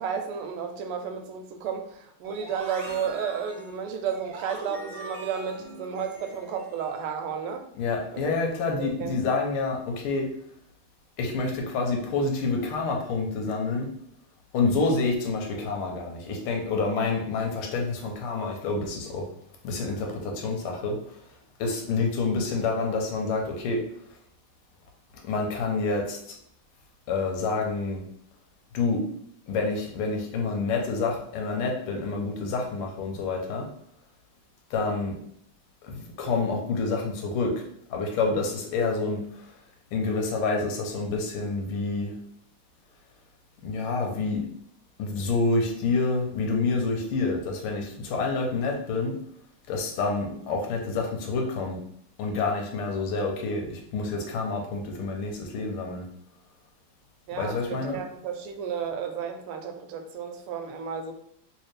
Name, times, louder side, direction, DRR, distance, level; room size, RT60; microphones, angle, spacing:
voice 1, 0.0-7.6 8.1-9.2 57.3-61.1, right 7 dB, 90° right, 5 dB, 1.5 m, -33 dB
sound 1, 2.2-7.1, right 2 dB, 55° right, 1.1 m, -43 dB
voice 2, 7.8-10.3 11.2-13.9 14.5-19.3 19.6-21.2 21.6-23.9 25.2-26.3 27.1-28.0 28.7-29.1 29.5-33.7 34.7-35.2 35.8-37.6 37.9-39.5 39.9-42.1 43.6-44.4 45.0-49.2 49.7-51.8 52.2-56.1 57.4-58.0, left 3 dB, 90° left, 1 dB, 1.6 m, -28 dB
3.3 x 3.2 x 3.2 m, 0.69 s
omnidirectional pair, 2.4 m